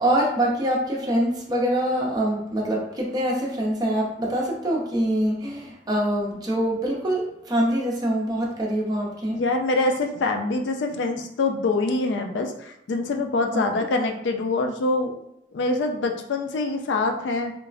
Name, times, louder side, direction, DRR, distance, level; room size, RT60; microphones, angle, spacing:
voice 1, 0.0-9.4 13.5-13.6, right 1 dB, 20° right, -2 dB, 0.6 m, -24 dB
voice 2, 9.3-15.1 15.5-17.5, left 2 dB, 85° left, 4 dB, 0.4 m, -25 dB
3.1 x 2.0 x 2.4 m, 0.79 s
head